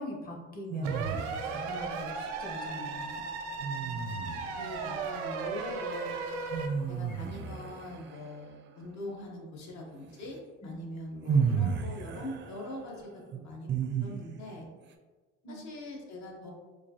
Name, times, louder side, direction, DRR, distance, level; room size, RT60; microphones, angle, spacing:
voice 1, 0.0-3.2 10.6-10.9 15.4-15.6, left 1 dB, 30° left, 0 dB, 0.9 m, -42 dB
sound 1, 0.7-1.8 3.6-4.8 6.5-8.5 10.3-10.4 11.3-14.6, right 6 dB, 35° right, 0.4 m, -33 dB
sound 2, 0.8-7.3, left 2 dB, 80° left, 1.0 m, -53 dB
sound 3, 0.8-6.7, right 5 dB, 90° right, 0.6 m, -36 dB
voice 2, 4.5-6.1 6.9-13.7 14.0-14.7 15.5-16.5, left 1 dB, 55° left, -1 dB, 1.0 m, -42 dB
4.5 x 2.3 x 2.8 m, 1.4 s
supercardioid pair, 90°, 32 cm